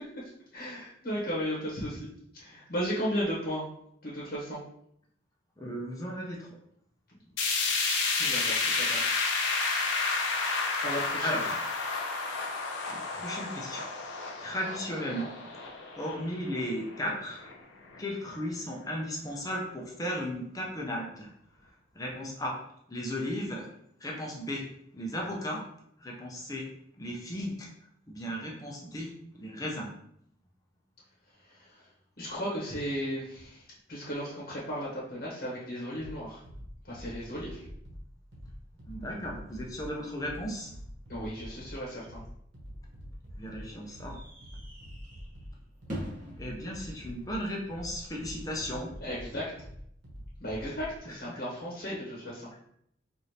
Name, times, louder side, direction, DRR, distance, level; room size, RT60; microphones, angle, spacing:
voice 1, 0.5-2.1 2.3-3.7 4.0-4.6 8.2-9.0 10.8-11.4 31.4-31.8 32.2-36.4 36.8-37.7 41.1-42.2 49.0-49.4 50.4-52.5, equal, 55° left, -6 dB, 1.1 m, -35 dB
voice 2, 5.6-6.5 11.2-11.6 12.9-13.8 14.4-15.4 16.0-17.5 18.0-21.3 21.9-22.6 22.9-23.7 24.0-24.7 24.9-25.6 26.0-26.7 27.0-27.7 28.1-29.9 38.9-40.7 43.4-44.2 46.4-48.9 51.1-51.4, equal, 20° left, -2 dB, 0.6 m, -35 dB
sound 1, 7.4-17.5 17.9-18.0 18.4-18.5 19.4-19.5, left 4 dB, 90° left, 0.8 m, -31 dB
sound 2, 36.0-51.0, equal, 90° right, 1.1 m, -46 dB
sound 3, 42.6-48.6, equal, 45° right, 1.2 m, -46 dB
4.8 x 2.7 x 2.8 m, 0.71 s
head